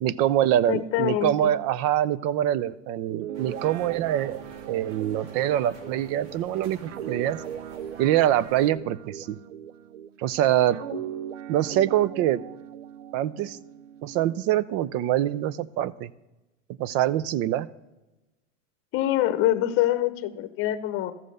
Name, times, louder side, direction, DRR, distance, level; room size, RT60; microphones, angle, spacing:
voice 1, 0.0-4.4 4.7-7.4 8.0-9.4 10.2-10.8 11.5-12.4 13.1-13.6 14.0-16.1 16.8-17.7, right 12 dB, 40° right, 19 dB, 0.5 m, -24 dB
voice 2, 0.7-1.5 10.9-11.0 18.9-21.1, left 13 dB, 35° left, 11 dB, 0.9 m, -25 dB
Guitar, 3.0-10.2 10.7-14.4, right 10 dB, 90° right, 0.6 m, -39 dB
sound 1, 3.3-8.7, right 3 dB, 65° right, 2.1 m, -47 dB
14.0 x 7.5 x 6.6 m, 1.0 s
supercardioid pair, 125°, 37 cm